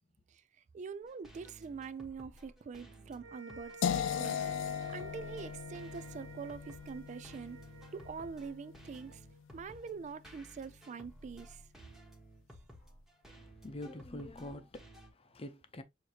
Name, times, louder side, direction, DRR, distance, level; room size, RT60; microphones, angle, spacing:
voice 1, 0.3-7.6 7.9-9.3 9.5-11.6, right 5 dB, 40° right, 0.3 m, -45 dB
sound 1, 1.0-15.1, equal, ahead, 1.2 m, -56 dB
sound 2, 3.2-9.6, right 3 dB, 75° right, 1.6 m, -53 dB
sound 3, 3.8-9.7, left 8 dB, 80° left, 0.3 m, -39 dB
voice 2, 13.3-15.8, left 1 dB, 30° left, 0.6 m, -46 dB
6.5 x 2.8 x 2.8 m
head